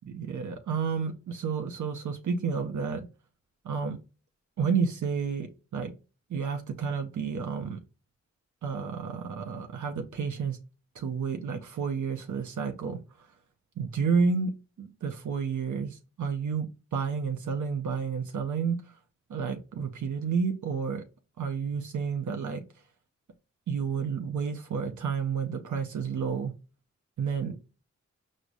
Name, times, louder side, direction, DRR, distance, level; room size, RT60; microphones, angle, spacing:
voice 1, 0.1-3.1 3.6-4.0 4.6-5.9 6.3-7.8 8.6-10.6 11.0-13.0 13.8-14.5 14.8-18.9 19.3-21.0 21.4-22.6 23.7-26.5 27.2-27.6, right 5 dB, 75° right, 0.5 m, -30 dB
4.7 x 2.1 x 2.5 m
cardioid pair, 40°, 30 cm